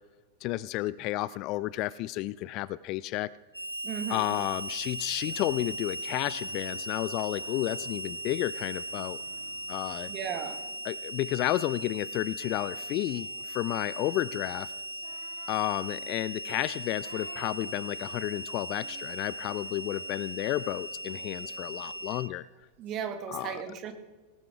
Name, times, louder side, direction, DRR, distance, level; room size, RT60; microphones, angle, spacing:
voice 1, 0.4-3.3 4.1-9.2 9.7-10.1 10.8-14.7 15.5-22.5 23.3-23.6, left 16 dB, 40° left, 20 dB, 0.3 m, -32 dB
Harmonica, 3.5-22.3, right 1 dB, 90° right, 0.3 m, -38 dB
voice 2, 3.8-4.4 10.1-10.6 22.8-23.9, right 8 dB, 35° right, 6 dB, 1.7 m, -36 dB
sound 1, 4.2-10.0, left 2 dB, 75° left, 1.9 m, -58 dB
Singing, 5.0-8.1 8.6-23.1, right 7 dB, 60° right, 1.5 m, -55 dB
19.0 x 12.5 x 3.6 m, 1.3 s
figure-of-eight pair, 90°, 0 cm